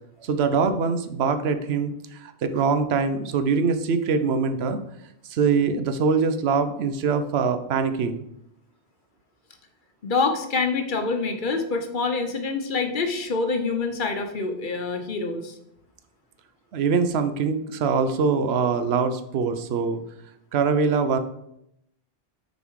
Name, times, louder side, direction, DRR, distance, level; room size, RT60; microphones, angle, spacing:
voice 1, 0.2-4.8 5.3-8.2 16.7-20.0 20.5-21.2, right 5 dB, 90° right, 10 dB, 0.9 m, -23 dB
voice 2, 10.0-15.6, left 4 dB, 55° left, 6 dB, 0.9 m, -26 dB
6.7 x 4.3 x 4.6 m, 0.79 s
omnidirectional pair, 1.1 m